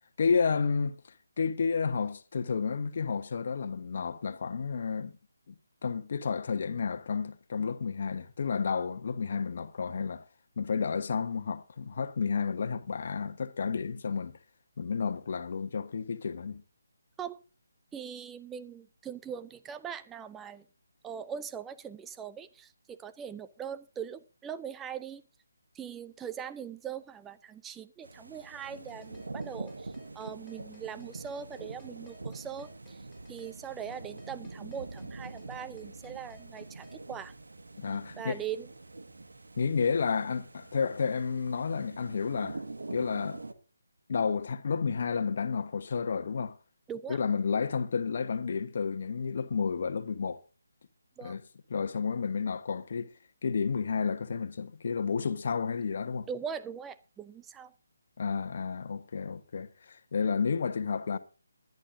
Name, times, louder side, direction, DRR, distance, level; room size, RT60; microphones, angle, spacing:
voice 1, 0.2-0.9 1.4-5.1 5.5-5.6 5.8-10.3 10.6-14.4 14.8-16.6 37.8-38.4 39.6-42.6 42.9-43.4 44.1-46.6 47.1-50.4 51.2-51.4 51.7-53.1 53.4-56.3 58.2-61.2, left 5 dB, 45° left, 1.3 m, -31 dB
voice 2, 17.9-20.7 21.0-25.2 25.7-33.0 33.3-37.3 38.2-38.7 46.9-47.2 51.2-51.4 56.3-57.7, right 8 dB, 10° right, 0.7 m, -41 dB
sound 1, 28.0-43.5, right 2 dB, 65° right, 1.8 m, -45 dB
sound 2, 28.6-37.0, left 2 dB, 10° left, 4.3 m, -59 dB
21.5 x 11.0 x 2.7 m
figure-of-eight pair, 145°, 0 cm